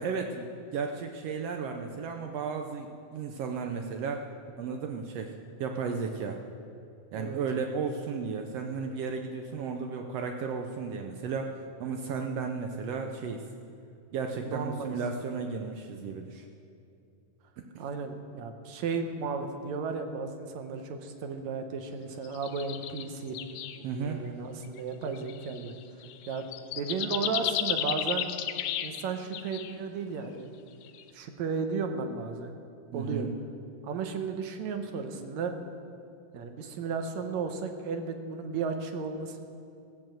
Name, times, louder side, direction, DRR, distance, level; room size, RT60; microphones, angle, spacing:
voice 1, 0.0-4.3 4.6-5.3 5.6-6.4 7.1-13.4 14.1-16.5 17.7-17.8 23.8-24.2 32.9-33.3, right 5 dB, 90° right, 4 dB, 1.4 m, -34 dB
voice 2, 7.1-7.4 14.4-14.9 17.8-23.4 23.9-25.7 26.3-26.4 26.7-28.3 28.8-30.5 31.1-32.5 32.9-33.3 33.8-35.5 36.3-39.4, right 5 dB, 70° right, 6 dB, 2.0 m, -34 dB
sound 1, 22.2-23.1 23.3-23.8 24.6-24.8 25.1-29.0 29.3-29.7 30.8-31.1, left 11 dB, 80° left, 2.1 m, -33 dB
15.5 x 7.7 x 7.7 m, 2.6 s
omnidirectional pair, 3.7 m